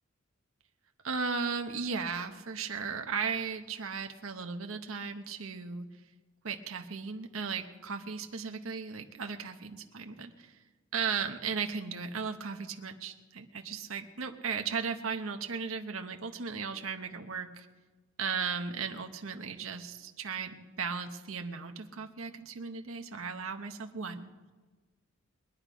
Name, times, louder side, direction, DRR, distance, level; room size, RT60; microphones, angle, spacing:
voice 1, 1.0-5.9 6.4-10.6 10.9-17.7 18.2-24.3, right 5 dB, 90° right, 5 dB, 0.9 m, -36 dB
22.0 x 10.0 x 5.0 m, 1.3 s
head